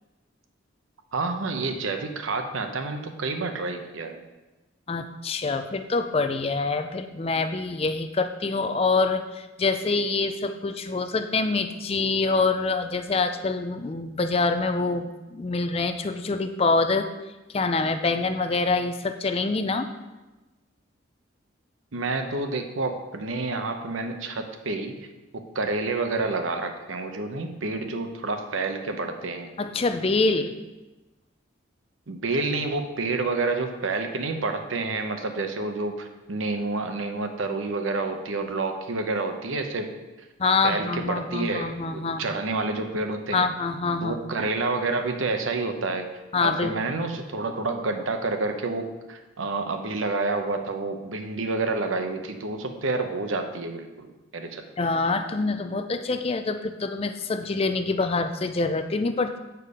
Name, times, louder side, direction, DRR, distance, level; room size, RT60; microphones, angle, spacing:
voice 1, 1.1-4.2 21.9-25.1 25.3-29.5 32.1-39.9 40.6-43.5 44.0-46.1 46.4-54.6, right 3 dB, 80° right, 6 dB, 0.8 m, -29 dB
voice 2, 4.9-17.1 17.5-19.9 29.6-30.5 40.4-42.2 43.3-44.2 46.3-46.7 54.8-59.4, left 3 dB, 30° left, 8 dB, 0.4 m, -25 dB
8.3 x 4.6 x 4.9 m, 1.1 s
head